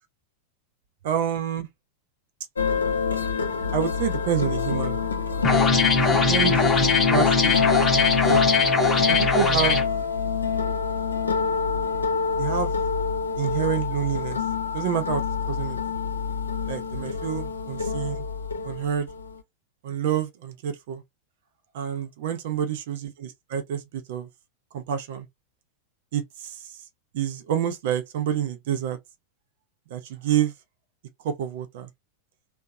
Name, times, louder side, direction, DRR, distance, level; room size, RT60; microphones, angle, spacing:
voice 1, 1.0-1.7 3.7-5.0 6.3-8.4 9.1-9.8 12.4-12.7 13.4-14.4 14.7-15.8 16.7-18.2 18.6-19.1 19.8-21.0 21.7-24.3 24.7-25.2 26.1-26.7 27.1-29.0 29.9-30.5 31.2-31.9, right 9 dB, 55° right, 0.6 m, -28 dB
sound 1, 2.6-19.4, left 6 dB, 75° left, 0.5 m, -26 dB
sound 2, 5.4-9.8, left 3 dB, 10° left, 0.9 m, -22 dB
2.8 x 2.1 x 2.3 m
figure-of-eight pair, 90°, 0 cm